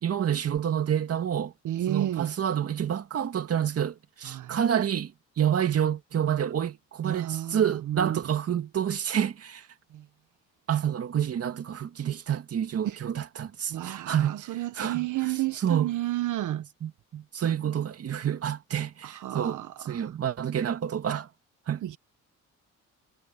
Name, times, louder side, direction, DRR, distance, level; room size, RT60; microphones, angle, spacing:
voice 1, 0.0-1.5 1.9-9.7 10.7-15.9 16.8-21.3 21.7-21.8, right 9 dB, 55° right, 2.0 m, -28 dB
voice 2, 1.6-2.3 4.2-4.6 7.0-8.2 9.9-10.0 12.8-13.0 13.7-16.6 19.0-20.0 21.8-22.0, right 14 dB, 80° right, 1.6 m, -31 dB
cardioid pair, 90°, 30 cm